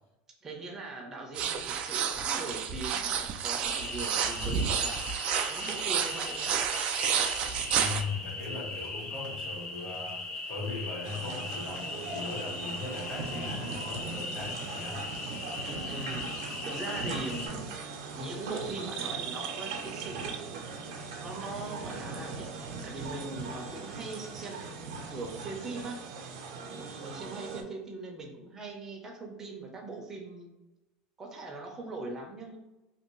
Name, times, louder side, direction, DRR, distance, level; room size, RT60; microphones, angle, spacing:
voice 1, 0.4-6.8 15.5-17.7 18.2-20.3 21.2-22.5 22.8-26.0 26.5-30.5 31.2-32.6, right 2 dB, 20° right, 1 dB, 0.7 m, -41 dB
sound 1, 1.3-8.0, right 7 dB, 45° right, 0.4 m, -30 dB
sound 2, 3.6-17.5, left 3 dB, 45° left, 0.9 m, -39 dB
voice 2, 7.8-15.0, left 3 dB, 70° left, -4 dB, 1.4 m, -39 dB
sound 3, 11.0-27.6, right 4 dB, 75° right, 0.7 m, -39 dB
2.9 x 2.6 x 3.1 m, 1.0 s
supercardioid pair, 140°, 3 cm